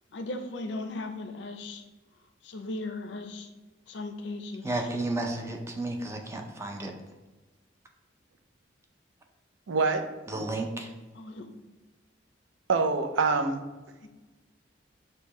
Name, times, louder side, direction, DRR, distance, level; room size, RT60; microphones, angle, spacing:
voice 1, 0.1-1.8 2.4-3.5 3.9-4.9 11.1-11.5 14.0-14.1, left 2 dB, 65° left, 6 dB, 0.5 m, -37 dB
voice 2, 4.6-6.9 10.3-10.9, right 2 dB, 15° right, 3 dB, 0.4 m, -32 dB
voice 3, 9.7-10.1 10.3-10.5 12.7-13.6, right 4 dB, 85° right, 6 dB, 0.5 m, -25 dB
6.4 x 2.2 x 3.0 m, 1.2 s
head